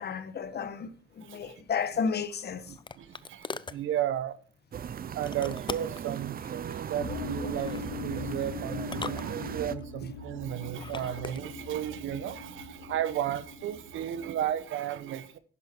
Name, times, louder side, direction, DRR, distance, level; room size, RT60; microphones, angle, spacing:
voice 1, 0.0-2.7, left 6 dB, 55° left, 1.5 m, -33 dB
voice 2, 1.2-1.6 2.7-4.4 5.1-15.4, right 11 dB, 80° right, 1.2 m, -34 dB
sound 1, 2.1-3.8 5.3-6.1 7.4-7.9 8.8-9.8 10.7-11.4, left 4 dB, 25° left, 0.6 m, -41 dB
sound 2, 4.7-9.7, right 8 dB, 50° right, 0.7 m, -38 dB
sound 3, 7.0-14.5, left 4 dB, 80° left, 2.2 m, -41 dB
11.0 x 10.5 x 4.6 m
cardioid pair, 90°, 20 cm